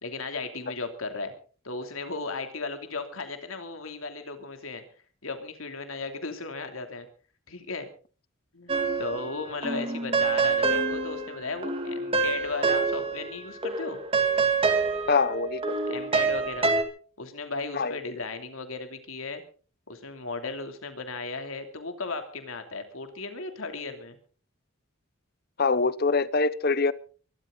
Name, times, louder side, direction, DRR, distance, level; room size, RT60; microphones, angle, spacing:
voice 1, 0.0-1.3 1.6-4.8 5.2-7.1 7.5-7.9 8.5-14.0 15.9-16.7 17.2-19.4 19.9-24.2, left 3 dB, 80° left, 2.9 m, -36 dB
sound 1, 8.7-9.4 9.6-13.4 13.6-16.8, right 4 dB, 25° right, 2.1 m, -26 dB
voice 2, 15.1-16.0 17.7-17.9 25.6-26.9, left 4 dB, 50° left, 0.8 m, -24 dB
23.0 x 12.5 x 3.9 m
head